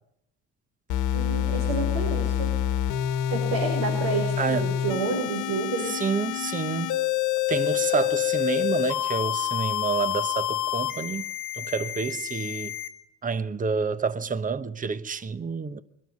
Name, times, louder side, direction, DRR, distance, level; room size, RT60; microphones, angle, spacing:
sound 1, 0.9-12.9, left 12 dB, 85° left, 1.4 m, -27 dB
voice 1, 1.1-2.6 3.3-5.9, right 3 dB, 80° right, 5.4 m, -29 dB
voice 2, 4.4-4.7 5.8-7.0 7.5-11.3 11.5-12.7 13.2-15.8, right 5 dB, 25° right, 1.0 m, -28 dB
23.0 x 12.5 x 9.6 m
cardioid pair, 115°, 30 cm